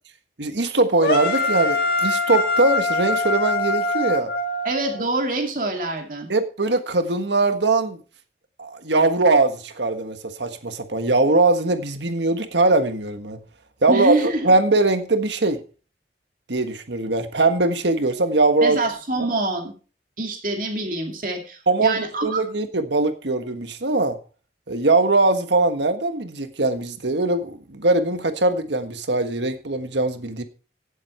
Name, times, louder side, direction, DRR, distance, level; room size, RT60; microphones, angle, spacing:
voice 1, 0.4-4.3 6.3-8.0 8.6-13.4 13.8-15.6 16.5-18.8 21.7-24.2 24.7-30.4, right 2 dB, 80° right, 8 dB, 1.5 m, -21 dB
sound 1, 1.0-5.1, left 2 dB, 55° left, 2.0 m, -23 dB
voice 2, 4.6-6.3 13.9-14.5 18.6-19.7 20.2-22.4, right 2 dB, 50° right, 2 dB, 2.6 m, -25 dB
17.0 x 7.7 x 4.4 m, 0.37 s
head